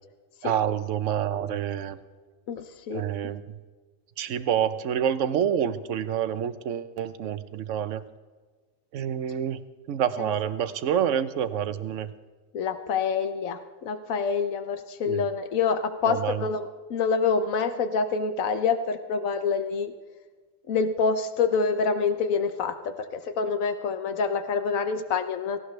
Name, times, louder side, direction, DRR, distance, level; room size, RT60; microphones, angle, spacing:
voice 1, 0.4-2.0 2.9-3.4 4.2-8.0 8.9-9.6 9.9-12.1 15.1-15.3 16.1-16.4, right 9 dB, 70° right, 13 dB, 1.1 m, -27 dB
voice 2, 2.5-3.1 10.2-10.3 12.5-19.9 20.7-25.6, left 5 dB, 90° left, 9 dB, 1.3 m, -27 dB
18.0 x 17.0 x 3.3 m, 1.4 s
omnidirectional pair, 1.4 m